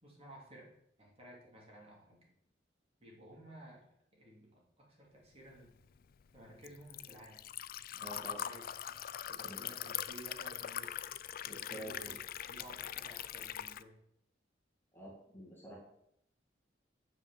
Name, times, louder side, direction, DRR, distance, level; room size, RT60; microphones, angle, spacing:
voice 1, 0.0-2.3 3.0-3.9 4.1-5.7 6.3-7.4 7.9-9.0 9.3-10.9 11.4-12.2 12.5-14.0, right 1 dB, 35° right, -2 dB, 2.9 m, -55 dB
Liquid, 5.6-13.8, left 11 dB, 55° left, 0.4 m, -42 dB
voice 2, 8.0-8.4 9.4-9.6 11.5-12.2 14.9-15.8, right 1 dB, 15° left, -2 dB, 1.9 m, -48 dB
6.8 x 6.0 x 7.1 m, 0.75 s
head